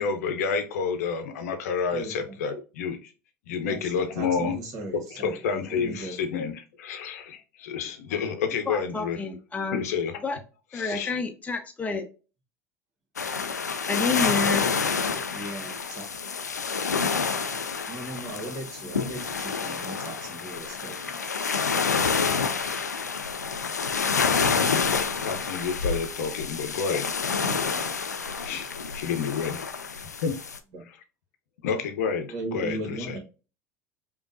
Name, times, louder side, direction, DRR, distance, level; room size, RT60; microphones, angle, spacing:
voice 1, 0.0-3.1 3.5-4.6 4.9-9.2 9.7-10.2 10.7-11.1 25.0-27.2 28.3-29.6 30.0-30.4 31.6-33.2, left 6 dB, 70° left, 0.8 m, -30 dB
voice 2, 1.9-2.4 3.6-6.5 15.3-16.0 17.9-21.2 27.4-27.9 30.7-30.8 32.3-33.2, right 1 dB, 45° right, 1.6 m, -38 dB
voice 3, 8.7-9.8 10.2-10.4 10.7-12.1 13.9-14.7, left 4 dB, 15° left, 0.7 m, -29 dB
sound 1, 13.2-30.6, left 5 dB, 90° left, 0.3 m, -28 dB
5.2 x 2.5 x 2.6 m
figure-of-eight pair, 70°, 9 cm